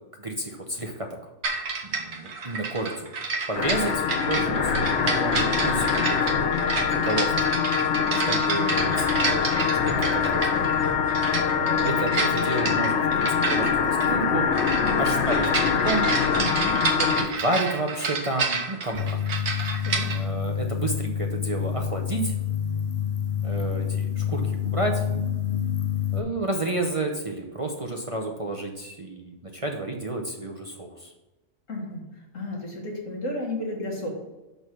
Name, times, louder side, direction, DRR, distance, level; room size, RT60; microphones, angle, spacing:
voice 1, 0.2-1.1 1.8-3.1 3.5-6.4 6.9-7.5 8.1-9.2 9.8-10.4 11.4-14.5 15.0-16.2 17.0-19.2 20.1-22.3 23.4-25.0 26.1-31.1, right 2 dB, 30° right, 2 dB, 0.8 m, -30 dB
sound 1, 1.4-20.2, right 4 dB, 60° right, 1.3 m, -30 dB
sound 2, 3.6-17.3, left 7 dB, 60° left, 1.0 m, -24 dB
voice 2, 16.3-16.8 19.8-20.1 31.7-34.1, left 2 dB, 80° left, -2 dB, 2.4 m, -33 dB
sound 3, 18.9-26.2, left 8 dB, 40° left, 0.7 m, -28 dB
6.3 x 5.2 x 6.1 m, 1.1 s
omnidirectional pair, 1.3 m